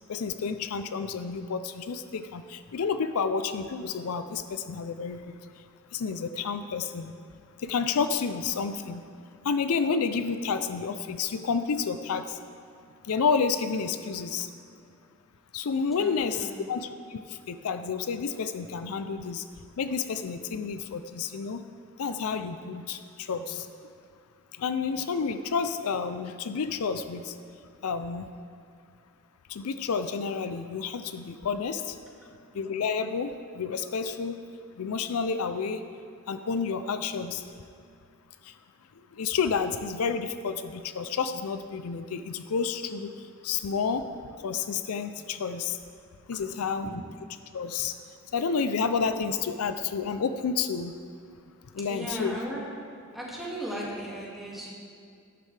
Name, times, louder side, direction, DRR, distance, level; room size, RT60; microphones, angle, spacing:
voice 1, 0.1-5.3 5.9-7.1 7.6-9.0 9.4-12.4 13.1-14.5 15.5-17.2 17.5-19.4 19.8-21.6 22.0-23.7 24.6-27.3 27.8-28.2 29.5-32.0 32.5-34.4 34.8-35.8 36.3-37.4 39.2-43.1 43.4-44.1 44.4-45.8 46.3-46.9 47.5-47.9 48.3-50.9 51.7-52.4, left 5 dB, 75° left, 11 dB, 0.5 m, -30 dB
voice 2, 15.9-16.7 32.2-32.3 46.3-47.0 51.8-52.6 53.1-54.7, right 1 dB, ahead, -6 dB, 2.1 m, -37 dB
12.5 x 12.0 x 3.3 m, 2.4 s
head